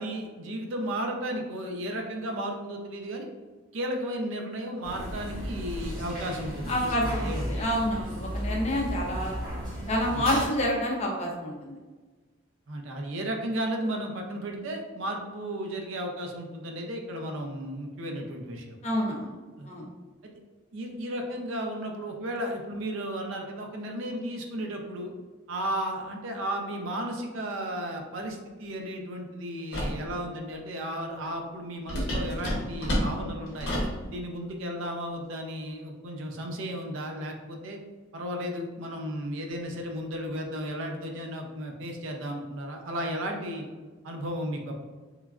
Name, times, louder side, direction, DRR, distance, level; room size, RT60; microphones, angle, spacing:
voice 1, 0.0-3.3 3.7-7.5 10.1-10.3 12.7-18.8 19.6-19.7 20.7-25.1 25.5-33.7 34.1-37.8 38.1-43.6 44.0-44.7, equal, 65° right, 2 dB, 0.4 m, -34 dB
sound 1, 4.8-10.5, equal, 20° right, 0.7 m, -34 dB
voice 2, 6.7-9.4 9.9-11.8 18.8-19.3 19.6-19.9, equal, 30° left, -1 dB, 0.4 m, -28 dB
sound 2, 29.7-30.0 31.9-34.0, equal, 50° left, 0.8 m, -29 dB
3.1 x 2.3 x 2.3 m, 1.3 s
head